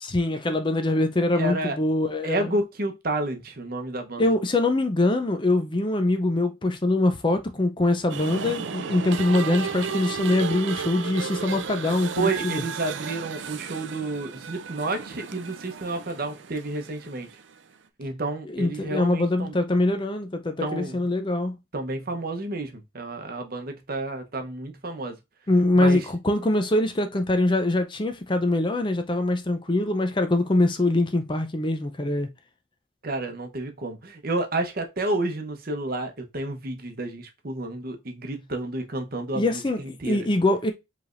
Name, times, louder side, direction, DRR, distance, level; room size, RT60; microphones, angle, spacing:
voice 1, 0.0-2.5 4.2-12.6 18.5-21.6 25.5-32.3 39.3-40.7, left 2 dB, 25° left, 0.5 m, -23 dB
voice 2, 1.4-1.8 2.2-4.3 12.2-17.3 18.0-19.5 20.6-21.0 21.7-25.2 25.7-26.1 33.0-40.3, right 2 dB, 45° right, 0.9 m, -30 dB
sound 1, 8.1-17.5, right 6 dB, 65° right, 0.5 m, -34 dB
5.1 x 3.3 x 2.5 m
head